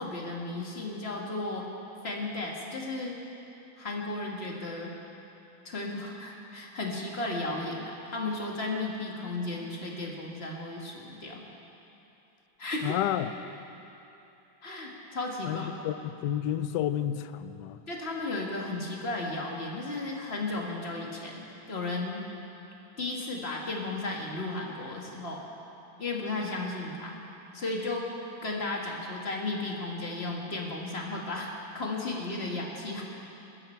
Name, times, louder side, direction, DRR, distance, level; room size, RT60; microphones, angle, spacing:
voice 1, 0.0-1.7 2.0-3.2 3.8-4.9 5.6-11.4 12.6-13.0 14.6-15.7 17.9-22.3 23.0-25.5 26.0-27.2 27.5-33.0, left 2 dB, 30° left, -2 dB, 2.0 m, -34 dB
voice 2, 12.8-13.3 15.5-17.8, left 11 dB, 75° left, 12 dB, 1.1 m, -30 dB
21.5 x 13.0 x 4.5 m, 2.9 s
omnidirectional pair, 2.1 m